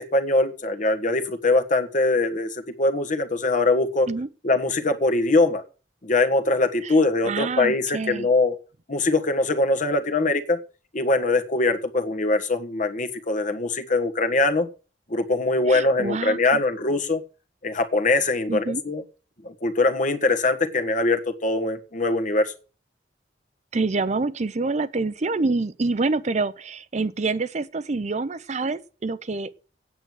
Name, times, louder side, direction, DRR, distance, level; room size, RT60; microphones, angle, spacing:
voice 1, 0.0-4.1 4.4-5.6 6.0-8.6 8.9-10.6 10.9-14.7 15.1-17.2 17.6-19.0 19.4-22.5, left 2 dB, 45° left, 1.5 m, -22 dB
voice 2, 7.2-8.3 15.7-16.6 18.5-18.8 23.7-29.5, right 3 dB, 40° right, 0.6 m, -27 dB
9.1 x 7.8 x 9.3 m
head